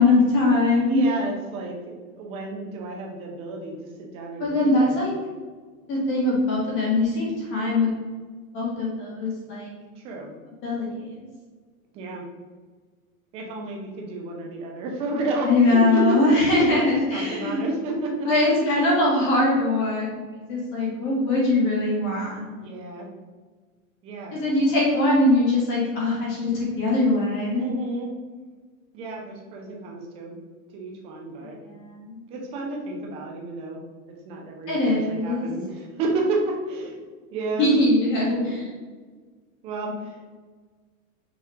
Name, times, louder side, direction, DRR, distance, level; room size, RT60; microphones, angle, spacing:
voice 1, 0.0-1.1 4.4-5.1 5.9-7.9 8.5-9.7 10.6-11.3 15.4-17.7 18.3-20.1 20.5-22.7 24.3-27.6 31.4-32.2 34.7-35.5 37.6-38.5, left 2 dB, 30° left, -4 dB, 1.6 m, -22 dB
voice 2, 0.8-1.8 2.1-5.0 10.0-10.3 11.9-12.2 13.3-16.2 16.6-18.6 22.6-23.1 24.0-24.4 27.5-28.1 28.9-30.4 30.7-31.6 32.3-33.8 34.1-37.0 37.3-37.7 38.2-38.5 39.6-40.2, right 2 dB, 15° right, 0 dB, 0.5 m, -31 dB
6.0 x 3.6 x 4.4 m, 1.4 s
supercardioid pair, 160°, 43 cm